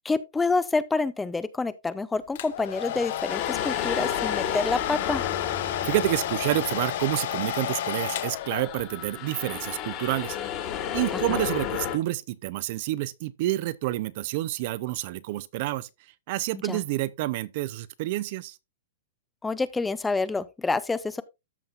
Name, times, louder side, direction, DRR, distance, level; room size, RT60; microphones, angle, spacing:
voice 1, 0.1-5.2 11.3-11.4 16.7-16.8 19.4-21.2, left 3 dB, 10° left, 0.4 m, -27 dB
Domestic sounds home sounds, 2.3-9.0, left 11 dB, 55° left, 0.8 m, -31 dB
sound 1, 3.3-7.9 8.3-12.0, left 9 dB, 30° left, 1.6 m, -33 dB
voice 2, 5.8-10.4 10.9-15.9 16.3-18.6, right 16 dB, 45° right, 0.5 m, -28 dB
13.5 x 5.5 x 2.4 m
hypercardioid pair, 150°, 0 cm